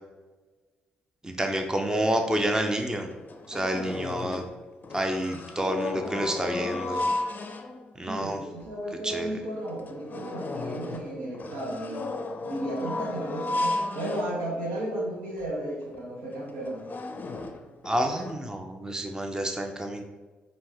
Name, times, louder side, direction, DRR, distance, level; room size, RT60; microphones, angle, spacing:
voice 1, 1.2-3.1 3.5-4.5 4.9-7.1 8.0-8.4 9.0-9.3 17.8-20.0, right 1 dB, 15° right, 4 dB, 0.6 m, -28 dB
sound 1, 2.5-2.6 2.9-4.6 4.8-8.1 8.6-8.7 9.1-9.2 9.7-14.8 15.4-15.5 15.8-16.0 16.5-18.3, left 2 dB, 40° left, 0.5 m, -34 dB
voice 2, 8.0-12.1 12.4-16.9, right 1 dB, 80° right, -3 dB, 1.1 m, -34 dB
5.2 x 2.6 x 3.4 m, 1.3 s
hypercardioid pair, 40°, 4 cm